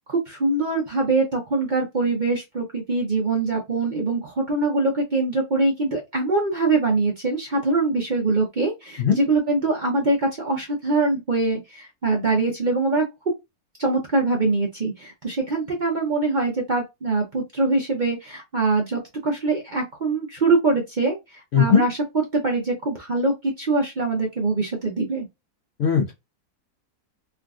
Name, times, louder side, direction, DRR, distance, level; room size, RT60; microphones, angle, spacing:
voice 1, 0.1-13.0 13.8-25.3, right 3 dB, 45° right, 0.7 m, -23 dB
voice 2, 21.5-21.8 25.8-26.1, left 7 dB, 60° left, 0.7 m, -18 dB
3.5 x 2.5 x 2.3 m
omnidirectional pair, 1.6 m